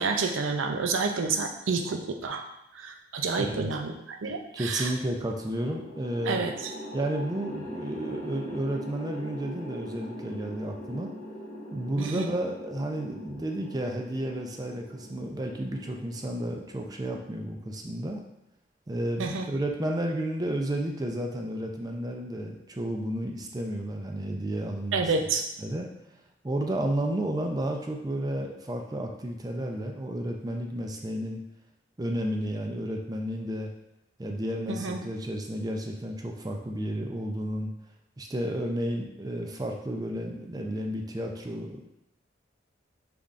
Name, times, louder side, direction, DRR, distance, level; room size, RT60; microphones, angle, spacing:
voice 1, 0.0-2.4 2.8-4.9 6.3-6.7 12.0-12.3 19.2-19.5 24.9-25.4 34.7-35.0, right 4 dB, 90° right, 4 dB, 0.5 m, -29 dB
voice 2, 3.4-3.7 4.5-6.4 6.9-11.1 11.7-18.2 18.9-25.0 25.6-25.9 26.4-31.4 32.0-33.7 34.2-37.7 38.2-41.8, right 1 dB, 20° right, 2 dB, 0.4 m, -32 dB
sound 1, 5.6-17.9, left 1 dB, 40° left, 0.7 m, -42 dB
5.3 x 3.4 x 2.5 m, 0.86 s
head